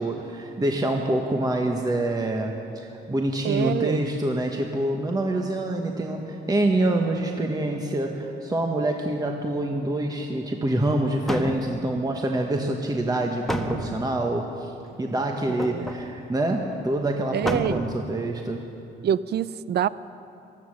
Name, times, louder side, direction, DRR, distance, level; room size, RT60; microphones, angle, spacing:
voice 1, 0.0-14.7 15.0-18.6, right 1 dB, 20° right, 2 dB, 1.2 m, -26 dB
voice 2, 3.4-4.0 15.5-15.9 17.3-17.8 19.0-19.9, right 9 dB, 55° right, 17 dB, 0.5 m, -26 dB
sound 1, 10.9-11.0 11.3-12.0 13.5-14.2 15.6-16.1 16.6-16.7 16.9-17.0 17.5-18.0 18.4-18.5, equal, ahead, 1.3 m, -31 dB
16.0 x 13.0 x 6.5 m, 2.7 s
cardioid pair, 90°, 20 cm